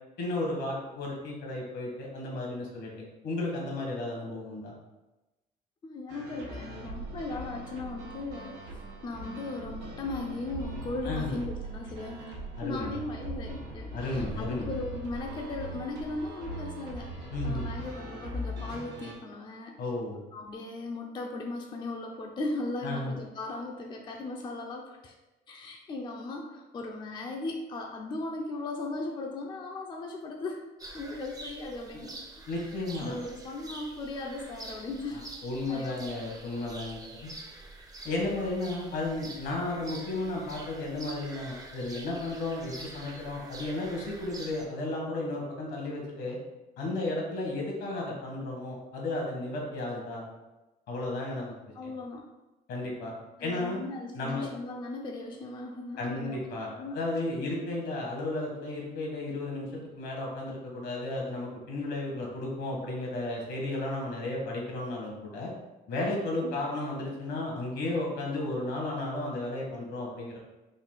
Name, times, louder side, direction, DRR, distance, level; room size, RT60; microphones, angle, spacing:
voice 1, 0.2-4.7 11.0-11.4 12.6-13.0 13.9-14.7 17.3-17.7 19.8-20.2 22.8-23.1 32.5-33.2 35.1-37.3 38.0-46.4 46.8-50.2 50.9-51.5 51.8-51.9 52.7-53.1 53.4-53.8 54.1-54.5 56.0-65.5 65.9-70.4, left 2 dB, 75° left, -1 dB, 1.3 m, -33 dB
voice 2, 5.8-8.6 9.0-12.3 12.6-19.7 20.3-25.1 25.5-30.6 30.9-32.2 33.0-35.2 35.6-36.0 51.7-52.3 53.4-56.4 56.7-57.0 66.4-66.6, left 2 dB, 25° left, 1 dB, 0.4 m, -37 dB
sound 1, 6.1-19.1, right 1 dB, 85° right, 1.1 m, -40 dB
sound 2, 30.8-44.7, right 2 dB, 20° right, 0.5 m, -46 dB
3.9 x 2.4 x 3.8 m, 1.1 s
cardioid pair, 110°, 17 cm